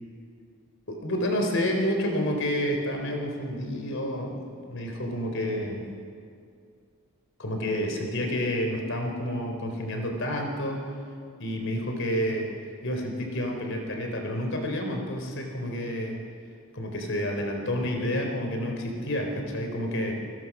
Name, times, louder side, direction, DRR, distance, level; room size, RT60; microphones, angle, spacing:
voice 1, 0.9-5.9 7.4-10.9 11.4-12.5 12.8-16.2 16.7-20.1, equal, 60° left, 2 dB, 4.1 m, -29 dB
28.5 x 21.0 x 6.3 m, 2.3 s
head